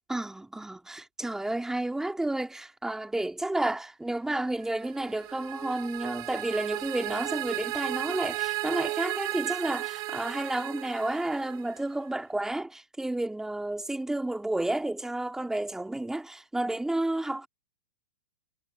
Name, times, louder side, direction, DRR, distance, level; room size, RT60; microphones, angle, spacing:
voice 1, 0.1-17.5, right 1 dB, 5° right, 2.1 m, -31 dB
sound 1, 4.7-11.8, right 20 dB, 40° right, 7.6 m, -35 dB
hypercardioid pair, 110°, 11 cm